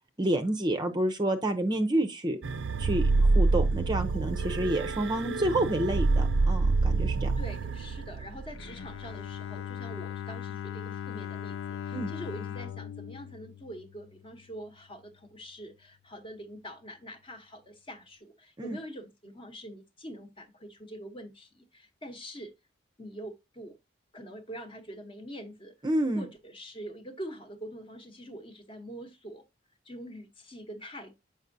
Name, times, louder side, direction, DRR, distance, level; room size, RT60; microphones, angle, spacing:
voice 1, 0.2-2.4 2.8-7.3 11.9-12.1 18.6-18.8 25.8-26.3, right 1 dB, 20° right, 0.6 m, -29 dB
sound 1, 2.4-9.1, right 3 dB, 70° right, 0.5 m, -27 dB
voice 2, 7.4-22.5 23.0-23.8 24.1-25.7 26.1-29.5 29.8-31.2, equal, 25° left, 1.0 m, -44 dB
Bowed string instrument, 8.5-14.5, left 9 dB, 85° left, 0.4 m, -39 dB
7.9 x 5.3 x 2.6 m
head